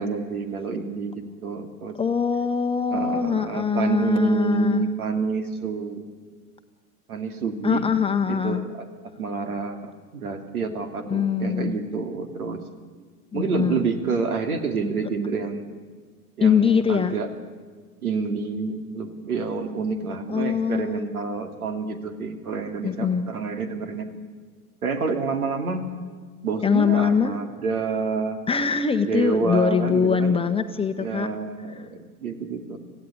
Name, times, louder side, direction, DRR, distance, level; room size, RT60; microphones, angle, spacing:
voice 1, 0.0-2.0 2.9-6.0 7.1-7.9 8.3-8.7 9.2-12.7 13.3-15.6 16.4-17.3 18.0-24.1 24.8-25.9 26.4-28.4 29.1-30.4 31.0-32.8, right 4 dB, 70° right, 7 dB, 2.8 m, -28 dB
voice 2, 2.0-4.9 7.6-8.7 11.1-11.8 13.3-13.9 16.4-17.1 20.3-21.0 22.8-23.3 26.6-27.3 28.5-31.3, left 6 dB, 10° left, 7 dB, 1.1 m, -23 dB
26.5 x 16.0 x 9.6 m, 1.5 s
figure-of-eight pair, 90°, 46 cm